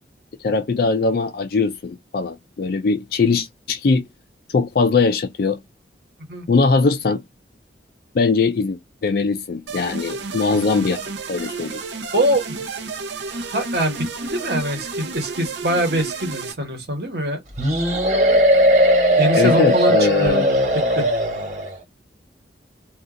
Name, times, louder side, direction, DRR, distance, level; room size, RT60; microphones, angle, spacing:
voice 1, 0.4-4.0 4.5-5.6 6.5-7.2 8.1-11.0 11.3-11.8 19.3-20.5, left 4 dB, 55° left, 0.4 m, -20 dB
sound 1, 9.7-16.5, right 3 dB, 75° right, 0.7 m, -31 dB
voice 2, 12.1-12.6 13.3-17.4 19.2-20.7 21.0-21.1, right 1 dB, 60° right, 1.2 m, -23 dB
sound 2, 17.6-21.7, equal, 40° right, 1.2 m, -18 dB
2.5 x 2.3 x 3.6 m
head